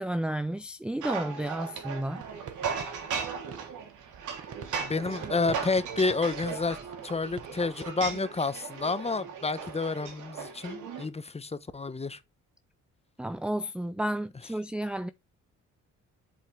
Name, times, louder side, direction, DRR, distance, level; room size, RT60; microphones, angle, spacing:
voice 1, 0.0-2.2 13.2-15.1, right 1 dB, 5° right, 0.5 m, -32 dB
sound 1, 1.0-11.1, right 6 dB, 80° right, 3.3 m, -37 dB
sound 2, 2.2-7.7, right 8 dB, 50° right, 1.4 m, -47 dB
voice 2, 4.8-6.8 7.0-12.2, left 3 dB, 20° left, 1.1 m, -30 dB
7.8 x 7.7 x 3.5 m
cardioid pair, 90°, 30 cm